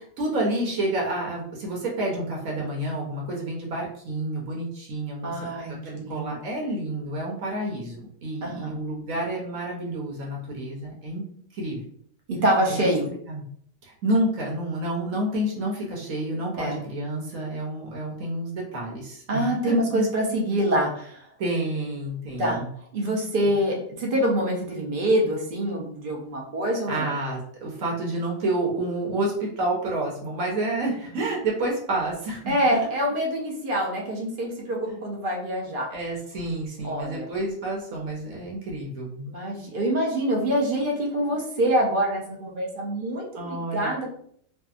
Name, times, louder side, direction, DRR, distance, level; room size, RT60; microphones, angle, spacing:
voice 1, 0.0-5.5 5.8-11.2 11.5-11.8 12.7-13.4 13.8-20.1 21.4-22.7 26.9-32.6 35.9-39.3 43.3-43.9, right 1 dB, 90° right, -2 dB, 1.1 m, -29 dB
voice 2, 5.2-6.4 8.4-8.8 12.3-13.1 16.6-16.8 19.3-21.3 22.4-22.6 22.9-27.1 32.5-35.9 36.8-37.3 39.3-44.1, right 1 dB, 55° right, -1 dB, 0.7 m, -25 dB
2.6 x 2.4 x 2.4 m, 0.63 s
omnidirectional pair, 1.4 m